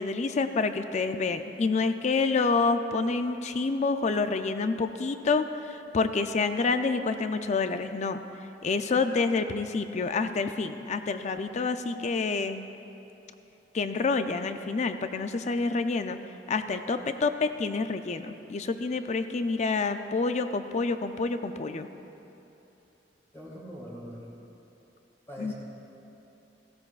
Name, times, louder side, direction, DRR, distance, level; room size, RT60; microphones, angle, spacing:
voice 1, 0.0-8.2 8.6-12.6 13.7-16.2 16.5-21.9 25.4-25.5, left 4 dB, 40° left, 9 dB, 0.4 m, -28 dB
voice 2, 23.3-24.3 25.3-25.5, equal, 15° left, -7 dB, 2.8 m, -42 dB
16.5 x 16.0 x 2.4 m, 2.9 s
head